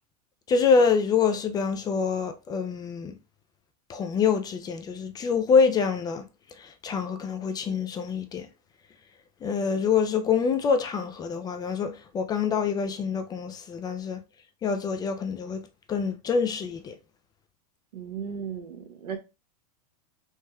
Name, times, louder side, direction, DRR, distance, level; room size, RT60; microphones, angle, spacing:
voice 1, 0.5-3.1 3.9-6.2 6.6-8.5 9.4-14.2 14.6-15.6 15.9-17.0, left 5 dB, 20° left, 0.3 m, -25 dB
voice 2, 17.9-19.2, right 7 dB, 80° right, 0.9 m, -35 dB
3.4 x 3.0 x 2.2 m
hypercardioid pair, 120°, 20 cm